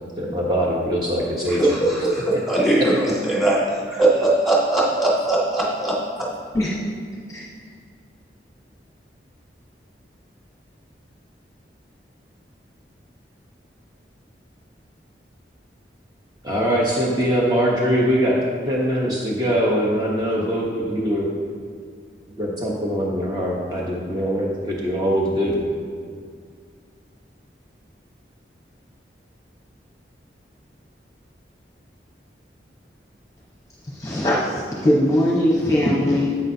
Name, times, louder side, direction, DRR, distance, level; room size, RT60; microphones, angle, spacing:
voice 1, 0.2-1.8 16.4-18.4 18.7-21.3 22.4-25.6, equal, 25° right, -4 dB, 0.9 m, -22 dB
voice 2, 1.5-6.3, right 2 dB, ahead, -6 dB, 1.9 m, -20 dB
voice 3, 33.9-36.3, left 1 dB, 20° left, -5 dB, 0.9 m, -20 dB
10.5 x 8.4 x 2.7 m, 2.1 s
head